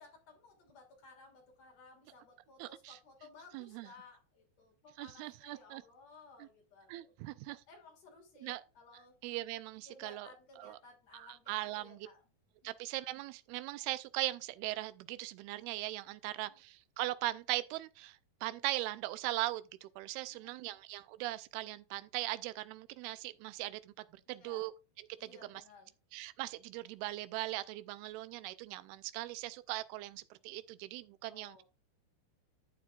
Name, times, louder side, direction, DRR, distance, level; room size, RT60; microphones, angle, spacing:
voice 1, 0.0-7.1 7.7-9.1 9.9-12.2 12.6-12.7 16.5-16.6 20.3-20.7 24.3-24.7 25.2-25.9 31.3-31.6, left 4 dB, 45° left, 3.8 m, -58 dB
voice 2, 2.6-3.0 3.5-3.9 5.0-5.8 6.4-6.5 6.9-7.6 8.4-8.6 9.2-10.3 10.6-10.8 11.1-12.1 12.6-23.9 24.3-24.7 25.0-25.6 26.1-31.6, right 17 dB, 85° right, 2.6 m, -40 dB
11.5 x 8.0 x 2.4 m
omnidirectional pair, 4.5 m